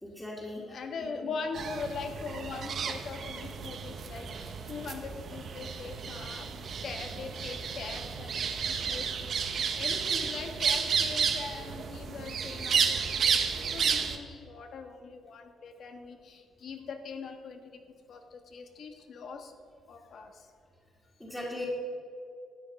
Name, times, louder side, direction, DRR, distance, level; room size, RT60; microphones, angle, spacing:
voice 1, 0.0-1.3 21.2-21.7, left 1 dB, 5° left, -5 dB, 2.3 m, -40 dB
voice 2, 0.7-6.5 6.8-13.3 13.7-17.8 18.1-19.5 19.9-20.5, left 4 dB, 60° left, 6 dB, 1.4 m, -41 dB
sound 1, 1.5-14.2, right 6 dB, 60° right, 1.1 m, -32 dB
12.5 x 9.0 x 5.3 m, 2.5 s
cardioid pair, 90°, 0 cm